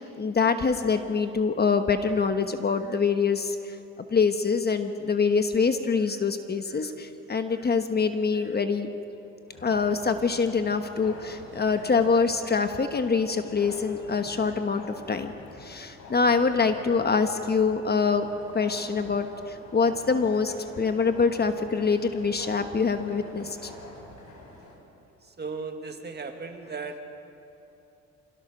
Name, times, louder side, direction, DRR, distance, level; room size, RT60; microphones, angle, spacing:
voice 1, 0.0-3.8 4.1-8.9 9.6-15.3 15.6-18.3 18.5-23.7, left 5 dB, 35° left, 8 dB, 1.2 m, -25 dB
sound 1, 9.5-24.8, left 2 dB, 70° left, 5.1 m, -46 dB
voice 2, 25.4-27.0, right 4 dB, 35° right, 5 dB, 2.0 m, -36 dB
26.5 x 16.5 x 6.2 m, 2.9 s
cardioid pair, 90°, 30 cm